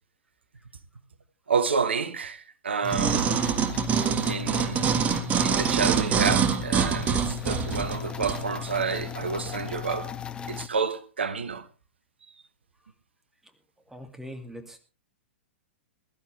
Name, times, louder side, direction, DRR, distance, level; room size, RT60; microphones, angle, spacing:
voice 1, 1.5-3.6 4.2-10.1 10.5-11.6, right 5 dB, 65° right, 1.3 m, -29 dB
sound 1, 2.8-10.7, left 10 dB, 15° left, 1.1 m, -37 dB
sound 2, 2.9-8.4 9.0-9.1, right 7 dB, 20° right, 1.6 m, -25 dB
voice 2, 13.9-14.8, equal, 5° right, 2.3 m, -41 dB
21.5 x 12.0 x 3.3 m
figure-of-eight pair, 105°, 6 cm